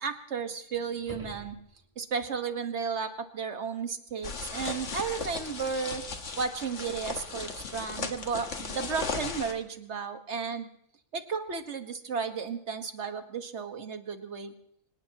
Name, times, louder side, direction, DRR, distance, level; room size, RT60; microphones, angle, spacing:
voice 1, 0.0-1.6 2.0-6.0 6.4-10.7 11.1-14.5, right 5 dB, 65° right, 7 dB, 1.7 m, -34 dB
sound 1, 1.0-2.2 7.1-7.2, left 1 dB, 30° right, 2.8 m, -47 dB
sound 2, 4.2-9.5, left 4 dB, 75° left, 1.8 m, -36 dB
25.5 x 18.5 x 2.9 m, 0.70 s
omnidirectional pair, 1.3 m